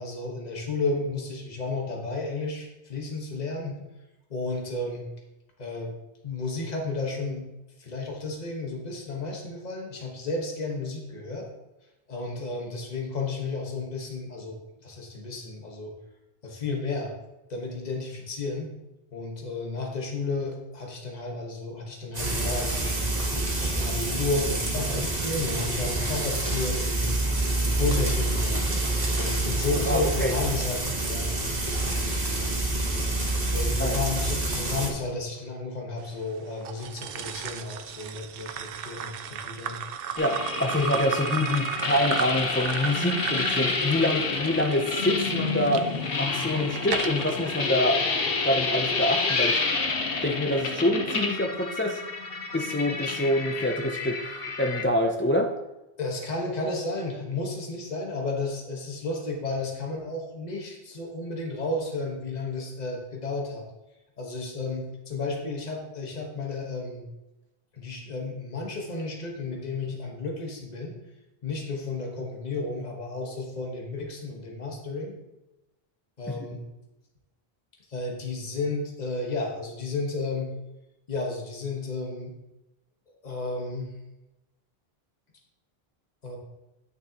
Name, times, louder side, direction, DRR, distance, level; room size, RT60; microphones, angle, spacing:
voice 1, 0.0-3.8 4.3-5.0 5.6-5.9 6.2-7.5 7.8-11.5 12.1-15.9 16.4-17.1 17.5-18.7 19.1-23.1 23.6-27.3 27.6-28.6 29.2-31.3 33.5-39.8 56.0-63.6 64.2-67.0 67.7-70.9 71.4-75.2 76.2-76.6 77.9-80.5 81.1-82.3 83.1-83.9 86.2-86.4, left 3 dB, 45° left, 0 dB, 1.4 m, -32 dB
Frying (food), 22.1-34.9, right 2 dB, 40° right, 1.5 m, -27 dB
voice 2, 29.9-30.3 33.8-34.0 40.2-45.9 46.2-48.0 48.4-49.6 50.2-52.0 52.5-54.2 54.6-55.5 76.3-76.4, left 1 dB, 20° left, 2 dB, 0.4 m, -26 dB
sound 1, 36.6-45.8 46.4-47.3, right 8 dB, 70° right, 0.7 m, -34 dB
sound 2, 40.2-54.8, left 4 dB, 65° left, 1.1 m, -29 dB
9.2 x 6.4 x 2.9 m, 0.99 s
omnidirectional pair, 1.0 m